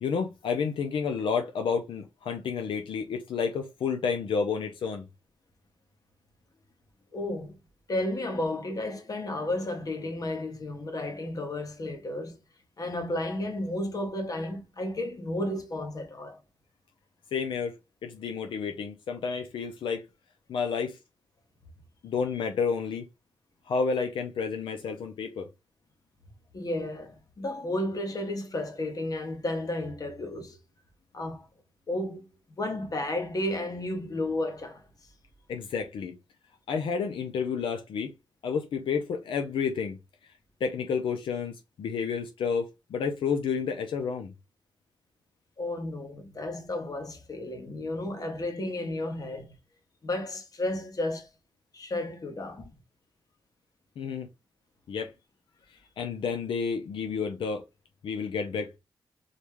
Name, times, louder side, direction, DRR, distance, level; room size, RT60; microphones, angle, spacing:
voice 1, 0.0-5.0 17.3-17.7 18.0-20.1 20.5-21.0 22.0-23.0 23.7-25.5 35.5-36.2 36.7-38.1 38.4-40.0 40.6-44.3 54.0-54.3 54.9-55.1 56.0-57.6 58.0-58.8, left 5 dB, 90° left, 0.7 m, -30 dB
voice 2, 7.1-7.6 7.9-12.4 12.8-16.4 22.4-22.5 26.5-30.6 31.1-31.4 31.9-32.3 32.6-34.8 45.6-49.5 50.0-51.3 51.7-52.7, left 1 dB, 45° left, 1.4 m, -32 dB
4.0 x 3.1 x 3.4 m
cardioid pair, 90°, 8 cm